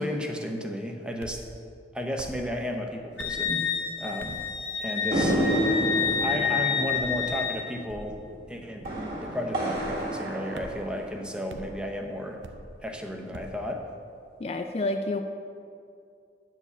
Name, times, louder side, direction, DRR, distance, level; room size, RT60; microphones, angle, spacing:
voice 1, 0.0-1.5 1.9-3.6 4.0-4.4 4.8-5.4 6.2-8.2 8.5-12.4 12.8-13.9, equal, 5° right, 3 dB, 0.6 m, -33 dB
sound 1, 1.2-1.4 2.2-2.4 3.2-3.4 4.2-4.5 5.2-5.5 6.0-6.3 6.9-7.2 7.9-8.2 8.8-9.2 9.7-10.0 10.5-10.9 11.5-11.7 12.4-12.7 13.3-13.6, right 2 dB, 90° right, 0.6 m, -44 dB
Wind instrument woodwind instrument, 3.2-7.7, left 6 dB, 80° left, 1.0 m, -29 dB
sound 2, 5.1-11.6, right 1 dB, 55° right, 2.0 m, -30 dB
voice 2, 14.4-15.2, left 2 dB, 35° left, 6 dB, 0.3 m, -29 dB
9.5 x 4.8 x 6.8 m, 2.4 s
head